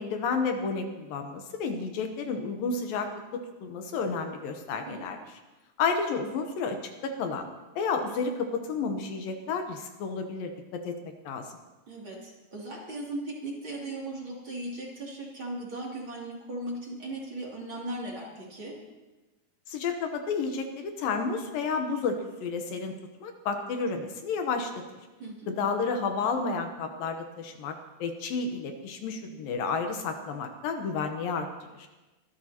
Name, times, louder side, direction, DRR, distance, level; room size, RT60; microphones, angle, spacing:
voice 1, 0.0-5.2 5.8-6.8 7.0-7.5 7.8-10.5 10.8-10.9 11.3-11.5 19.7-22.9 23.2-24.7 25.5-31.5 31.7-31.9, left 4 dB, 75° left, 5 dB, 2.7 m, -31 dB
voice 2, 11.9-18.7 25.2-25.6, right 1 dB, 35° right, -4 dB, 3.3 m, -37 dB
24.5 x 14.0 x 2.9 m, 1.1 s
omnidirectional pair, 4.2 m